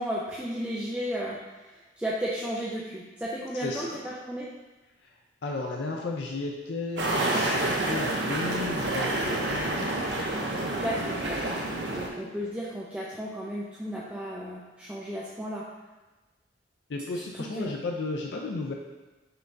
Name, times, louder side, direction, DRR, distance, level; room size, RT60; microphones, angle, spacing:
voice 1, 0.0-4.5 10.8-11.4 11.9-15.6 17.3-17.7, equal, 5° right, -6 dB, 0.4 m, -34 dB
voice 2, 3.5-4.0 5.4-10.0 11.9-12.0 16.9-18.7, left 3 dB, 80° left, 0 dB, 0.5 m, -34 dB
sound 1, 7.0-12.1, right 1 dB, 75° right, 0.7 m, -28 dB
5.9 x 3.3 x 2.6 m, 1.2 s
head